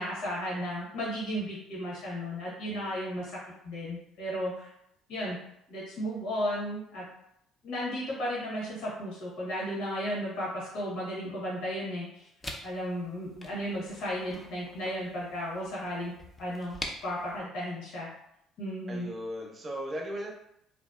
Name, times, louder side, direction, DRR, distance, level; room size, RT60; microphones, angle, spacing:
voice 1, 0.0-3.3 3.6-4.7 5.1-5.4 5.7-7.0 7.6-12.3 12.6-16.1 16.4-18.1 18.6-19.1, equal, 70° left, -6 dB, 0.9 m, -34 dB
sound 1, 12.4-17.4, left 1 dB, 25° left, 0.5 m, -45 dB
voice 2, 18.9-20.3, equal, 40° right, 0 dB, 0.7 m, -36 dB
2.6 x 2.1 x 2.3 m, 0.78 s
hypercardioid pair, 60°, 0 cm